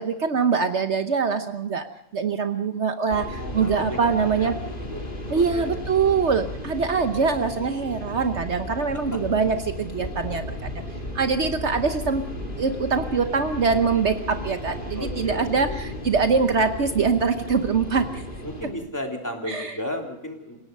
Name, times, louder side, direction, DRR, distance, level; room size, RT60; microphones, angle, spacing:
voice 1, 0.0-1.8 2.1-4.6 5.3-10.4 11.1-12.2 12.6-18.2 19.5-19.8, right 5 dB, 60° right, 8 dB, 1.2 m, -23 dB
sound 1, 3.1-18.7, left 1 dB, 40° left, 3.6 m, -34 dB
voice 2, 3.4-4.1 4.4-5.0 5.3-5.7 14.9-15.7 18.4-20.6, equal, 15° left, 1 dB, 3.5 m, -34 dB
28.0 x 17.5 x 5.4 m, 0.81 s
omnidirectional pair, 1.4 m